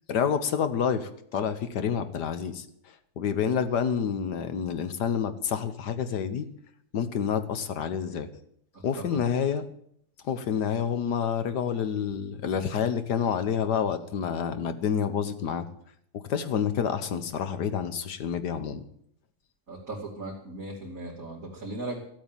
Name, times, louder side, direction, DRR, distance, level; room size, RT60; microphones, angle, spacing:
voice 1, 0.1-2.7 3.2-6.5 6.9-8.3 8.8-9.6 10.2-15.7 16.3-18.8, left 7 dB, 85° left, 10 dB, 1.7 m, -28 dB
voice 2, 19.7-22.0, right 2 dB, 55° right, -6 dB, 3.2 m, -37 dB
14.5 x 8.3 x 9.0 m, 0.70 s
omnidirectional pair, 1.7 m